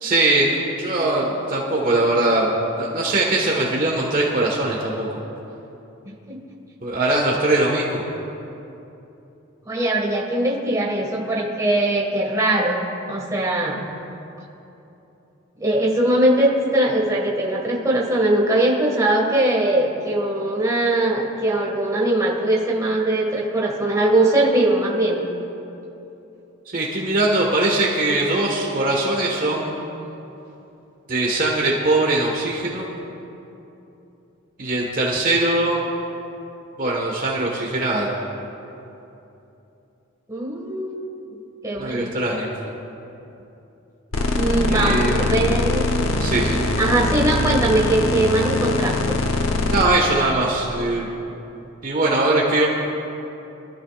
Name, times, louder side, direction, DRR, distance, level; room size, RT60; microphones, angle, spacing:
voice 1, 0.0-5.2 6.8-8.0 26.7-29.7 31.1-32.9 34.6-35.8 36.8-38.1 41.8-42.5 44.7-45.2 46.2-46.6 49.7-51.1 51.8-52.7, right 2 dB, 40° right, -2 dB, 1.5 m, -21 dB
voice 2, 6.1-6.4 9.7-12.8 13.1-13.8 15.6-25.2 40.3-41.0 41.6-42.1 44.3-45.9 46.8-49.2, right 1 dB, 15° right, -3 dB, 1.9 m, -21 dB
sound 1, 44.1-49.9, left 2 dB, 75° left, 0.9 m, -22 dB
24.0 x 13.5 x 2.5 m, 2.9 s
head